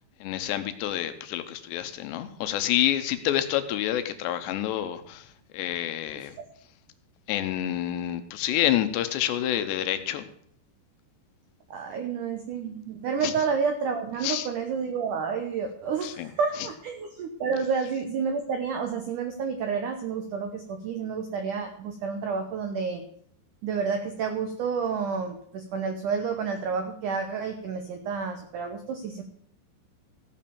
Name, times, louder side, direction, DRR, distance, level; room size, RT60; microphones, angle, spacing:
voice 1, 0.2-6.4 7.3-10.2 13.2-13.3 14.2-14.5 16.0-16.3, left 12 dB, 80° left, 10 dB, 3.0 m, -28 dB
voice 2, 11.7-23.0 23.6-29.2, right 5 dB, 85° right, 5 dB, 1.8 m, -30 dB
15.5 x 5.4 x 6.9 m, 0.65 s
omnidirectional pair, 5.0 m